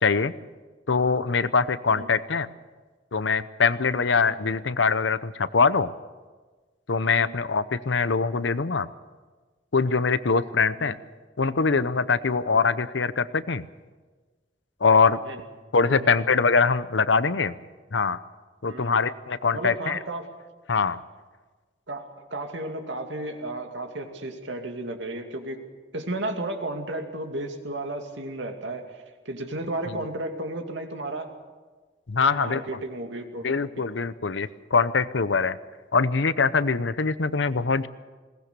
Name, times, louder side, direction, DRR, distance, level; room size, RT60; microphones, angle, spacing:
voice 1, 0.0-0.3 0.9-2.5 3.1-5.9 6.9-8.9 9.7-10.9 11.4-13.6 14.8-15.2 15.7-17.5 17.9-18.2 18.6-20.0 20.7-21.0 32.1-32.6 33.4-35.6 35.9-37.9, left 5 dB, 85° left, 15 dB, 0.8 m, -23 dB
voice 2, 15.9-16.2 18.7-18.9 19.5-20.3 21.9-25.6 25.9-28.8 29.3-31.3 32.2-33.9, right 2 dB, 85° right, 4 dB, 2.5 m, -33 dB
21.0 x 19.0 x 6.8 m, 1.3 s
head